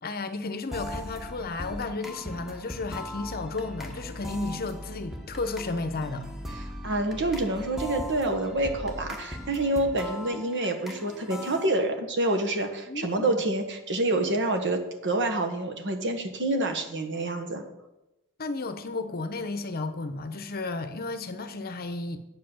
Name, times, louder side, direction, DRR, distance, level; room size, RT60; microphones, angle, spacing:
voice 1, 0.0-6.3 12.9-13.4 18.4-22.2, left 3 dB, 45° left, 0.9 m, -33 dB
sound 1, 0.7-11.7, left 1 dB, ahead, 1.2 m, -39 dB
voice 2, 6.5-17.6, right 2 dB, 55° right, 1.5 m, -27 dB
9.4 x 7.6 x 7.2 m
head